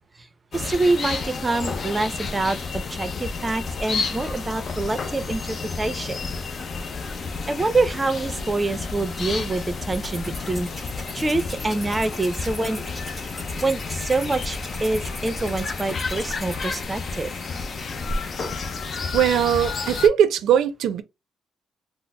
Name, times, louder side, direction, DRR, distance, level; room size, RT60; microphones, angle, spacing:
sound 1, 0.5-20.1, left 4 dB, 45° left, 0.5 m, -31 dB
voice 1, 0.5-6.2 7.5-12.8 13.6-17.3, right 3 dB, 20° right, 0.5 m, -26 dB
sound 2, 9.9-16.8, left 1 dB, 30° left, 1.5 m, -40 dB
voice 2, 19.1-21.0, right 9 dB, 80° right, 0.5 m, -20 dB
3.9 x 2.0 x 2.2 m
cardioid pair, 90°, 0 cm